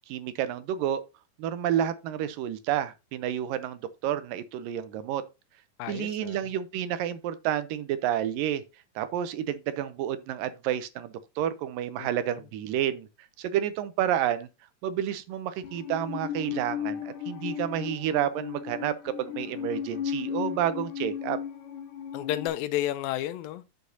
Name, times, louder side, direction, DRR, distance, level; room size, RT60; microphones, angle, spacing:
voice 1, 0.1-1.0 1.4-5.2 5.9-8.6 9.0-13.1 13.4-14.5 14.8-21.4, right 10 dB, 80° right, 2.3 m, -30 dB
voice 2, 5.8-6.4 12.0-12.1 22.1-23.7, left 13 dB, 85° left, 2.3 m, -31 dB
Musical instrument, 15.6-22.5, left 9 dB, 65° left, 2.5 m, -35 dB
9.3 x 6.8 x 2.8 m
omnidirectional pair, 4.2 m